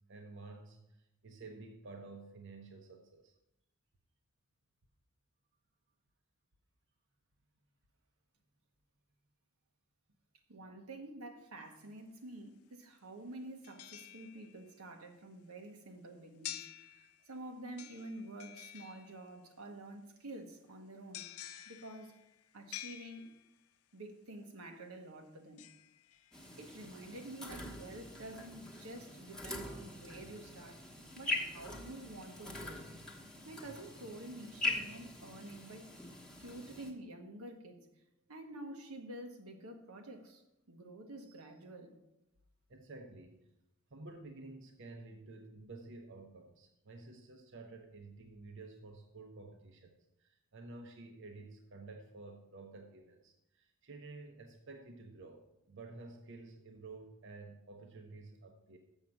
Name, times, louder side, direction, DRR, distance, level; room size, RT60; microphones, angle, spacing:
voice 1, 0.1-0.8 1.2-3.3 42.7-43.3 43.9-55.4 55.7-58.8, right 3 dB, 60° right, 3 dB, 0.8 m, -51 dB
voice 2, 10.5-21.3 21.7-22.2 22.5-23.2 23.9-25.6 26.6-30.8 31.1-32.9 33.4-35.9 36.4-37.8 38.3-42.0, right 1 dB, 90° right, 3 dB, 1.2 m, -49 dB
sound 1, 11.7-11.8 13.6-14.8 16.4-17.4 17.8-19.5 21.1-23.7 25.6-26.8 27.2-27.3, left 12 dB, 80° left, 0.5 m, -50 dB
sound 2, 26.3-36.9, left 2 dB, 5° left, 1.0 m, -43 dB
7.1 x 6.5 x 5.9 m, 0.88 s
head